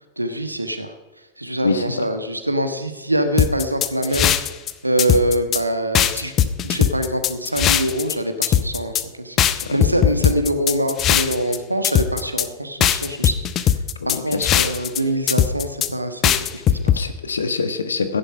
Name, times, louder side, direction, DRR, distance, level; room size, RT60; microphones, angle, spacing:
voice 1, 0.2-0.9 1.4-4.5 4.8-9.4 9.7-13.8 14.0-17.1, right 1 dB, 85° right, 8 dB, 1.3 m, -24 dB
voice 2, 1.6-2.1 9.5-10.3 14.0-14.6 16.8-18.2, left 4 dB, 75° left, 10 dB, 1.3 m, -26 dB
sound 1, 3.4-4.7 5.0-5.6 5.9-8.1 8.4-9.0 9.4-11.6 11.8-12.5 12.8-15.0 15.3-15.9 16.2-17.0, left 10 dB, 30° left, 0.8 m, -19 dB
15.5 x 10.5 x 5.5 m, 1.1 s
figure-of-eight pair, 90°, 0 cm